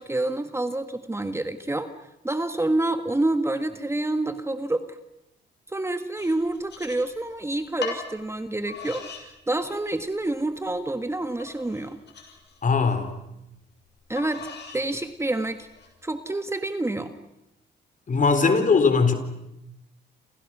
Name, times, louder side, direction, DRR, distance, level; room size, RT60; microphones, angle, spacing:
voice 1, 0.0-1.9 2.2-5.0 5.7-12.0 14.1-15.7 16.0-17.1, right 2 dB, 15° right, 8 dB, 1.6 m, -28 dB
sound 1, 6.2-7.4 7.8-8.0 8.7-9.2 9.7-10.2 10.7-10.8 11.4-13.0 14.2-14.9 15.4-15.9, left 6 dB, 60° left, 6.8 m, -39 dB
voice 2, 12.6-13.1 18.1-19.1, left 4 dB, 40° left, 9 dB, 4.0 m, -20 dB
29.0 x 28.5 x 6.2 m, 0.87 s
cardioid pair, 90°, 20 cm